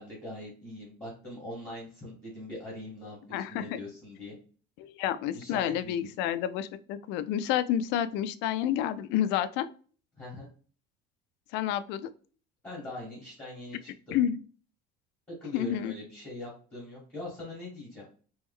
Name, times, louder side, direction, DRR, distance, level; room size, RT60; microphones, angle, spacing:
voice 1, 0.0-4.3 5.3-6.1 10.2-10.5 12.6-14.2 15.3-18.0, left 1 dB, 10° left, -6 dB, 1.6 m, -42 dB
voice 2, 3.3-3.8 4.8-9.7 11.5-12.1 14.1-14.4 15.5-15.9, left 10 dB, 55° left, 12 dB, 0.4 m, -29 dB
3.2 x 3.0 x 3.6 m, 0.40 s
cardioid pair, 175°, 21 cm